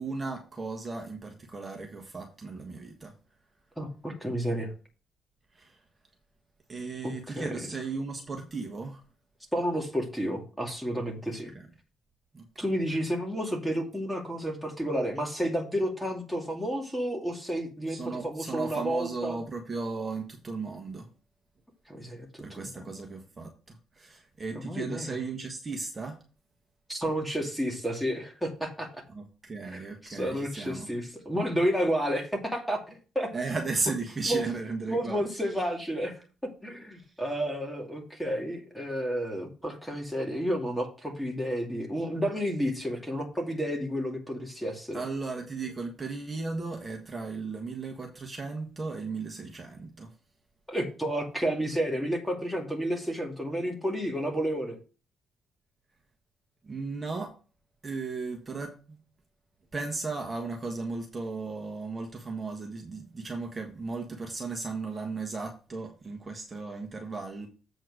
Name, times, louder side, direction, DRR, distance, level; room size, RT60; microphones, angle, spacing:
voice 1, 0.0-3.1 5.5-5.8 6.7-9.0 11.3-11.7 12.3-12.6 17.9-21.1 22.4-26.2 29.1-30.9 33.3-35.6 36.9-37.4 44.9-50.1 56.6-57.3 57.8-59.0 59.7-67.5, right 3 dB, 30° right, 1.5 m, -36 dB
voice 2, 3.8-4.7 7.0-7.7 9.5-11.5 12.6-19.4 21.9-22.8 24.5-25.1 26.9-28.9 29.7-29.8 30.1-33.3 34.3-34.4 34.9-45.0 50.7-54.8, equal, ahead, 2.4 m, -31 dB
7.9 x 4.5 x 6.2 m
cardioid pair, 90°, 0 cm